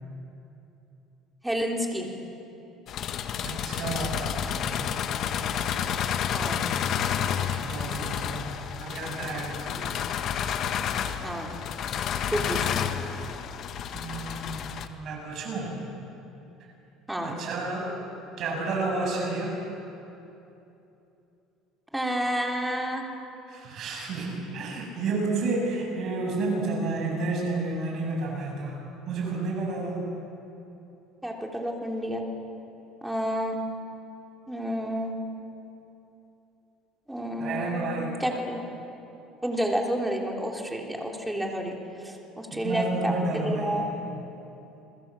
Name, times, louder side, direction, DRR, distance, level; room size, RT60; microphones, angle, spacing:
voice 1, 1.4-2.1 6.3-6.6 9.7-9.9 11.2-11.6 12.3-12.7 17.1-17.4 21.9-23.0 31.2-32.2 33.0-33.6 34.5-35.1 37.1-38.6 39.4-44.0, equal, 5° right, 1 dB, 3.3 m, -30 dB
sound 1, 2.9-14.9, left 8 dB, 50° left, 1.4 m, -30 dB
voice 2, 3.4-4.6 7.5-8.5 8.8-9.7 13.9-15.7 17.2-17.9 18.4-19.5 23.5-28.8 29.1-30.0 37.4-38.1 42.5-43.9, right 3 dB, 50° right, 0 dB, 7.7 m, -31 dB
29.5 x 21.0 x 7.6 m, 2.9 s
cardioid pair, 135°, 0 cm